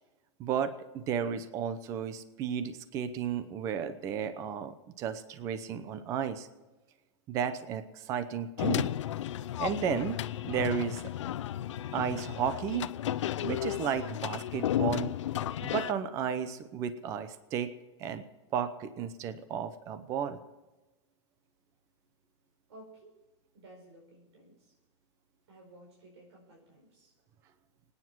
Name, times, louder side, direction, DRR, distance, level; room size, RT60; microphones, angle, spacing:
voice 1, 0.4-6.5 7.3-8.9 9.6-11.0 11.9-12.9 13.4-15.1 15.6-17.7 18.0-18.3 18.5-20.4, right 8 dB, 20° right, 12 dB, 0.8 m, -33 dB
sound 1, 8.6-15.9, left 12 dB, 80° left, 0.7 m, -33 dB
voice 2, 22.7-23.1 23.5-24.7 25.5-27.1, right 1 dB, 65° right, -2 dB, 5.2 m, -55 dB
25.5 x 9.7 x 4.6 m, 1.1 s
supercardioid pair, 175°, 15 cm